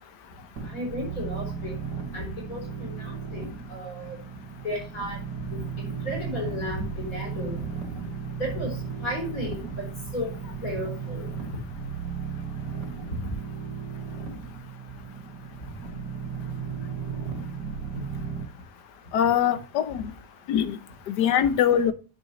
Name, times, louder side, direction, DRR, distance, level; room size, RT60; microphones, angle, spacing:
sound 1, 0.6-18.4, right 6 dB, 80° right, 2.9 m, -35 dB
voice 1, 0.7-1.8 2.1-4.2 4.6-5.2 5.5-7.6 8.4-9.9 10.1-11.6 13.2-13.3 17.9-18.0, left 1 dB, 55° left, 4.5 m, -34 dB
voice 2, 19.1-20.1 20.5-20.8 21.1-21.9, left 9 dB, 75° left, 1.5 m, -22 dB
9.8 x 6.4 x 3.0 m
omnidirectional pair, 1.8 m